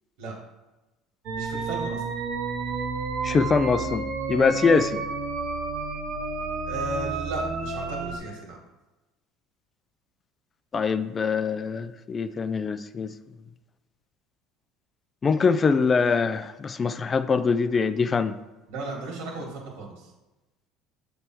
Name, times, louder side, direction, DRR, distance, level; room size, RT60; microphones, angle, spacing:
sound 1, 1.3-8.2, right 4 dB, 65° right, 0.9 m, -30 dB
voice 1, 1.3-2.0 6.6-8.6 18.7-20.1, right 2 dB, 80° right, -1 dB, 1.9 m, -35 dB
voice 2, 3.2-5.0 10.7-13.1 15.2-18.3, left 5 dB, 30° left, 12 dB, 0.3 m, -23 dB
7.0 x 3.3 x 4.4 m, 1.1 s
supercardioid pair, 95°, 0 cm